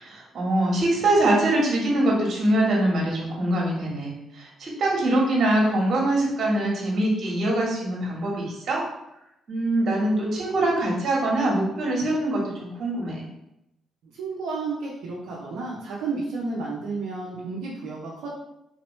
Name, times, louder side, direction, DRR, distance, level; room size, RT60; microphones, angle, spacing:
voice 1, 0.0-8.8 9.5-13.2, right 1 dB, 60° right, -2 dB, 1.4 m, -23 dB
voice 2, 14.0-18.3, right 3 dB, 75° right, -5 dB, 0.7 m, -32 dB
4.0 x 2.9 x 3.1 m, 0.84 s
hypercardioid pair, 50°, 0 cm